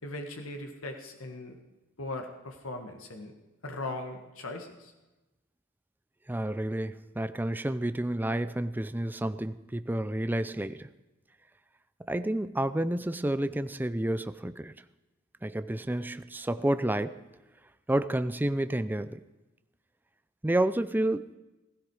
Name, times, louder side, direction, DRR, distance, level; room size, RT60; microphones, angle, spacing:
voice 1, 0.0-1.6 2.0-3.3 3.6-4.9, left 2 dB, 80° left, 4 dB, 1.7 m, -39 dB
voice 2, 6.3-10.9 12.1-14.7 15.4-17.3 17.9-19.2 20.4-21.3, right 1 dB, 10° right, 12 dB, 0.4 m, -30 dB
16.5 x 15.5 x 4.8 m, 1.1 s
head